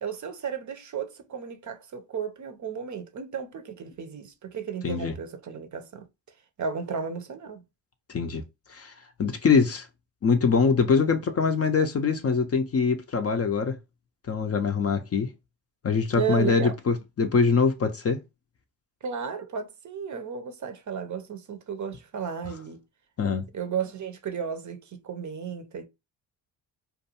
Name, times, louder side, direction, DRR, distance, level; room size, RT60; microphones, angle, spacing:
voice 1, 0.0-6.1 6.6-7.6 16.2-16.7 19.0-22.8 23.5-25.9, right 6 dB, 40° right, 0.6 m, -33 dB
voice 2, 4.8-5.1 8.1-8.4 8.7-8.9 9.2-9.9 10.2-13.8 14.3-15.3 15.8-18.2 23.2-23.4, left 5 dB, 35° left, 0.5 m, -23 dB
2.5 x 2.2 x 2.7 m
supercardioid pair, 45°, 46 cm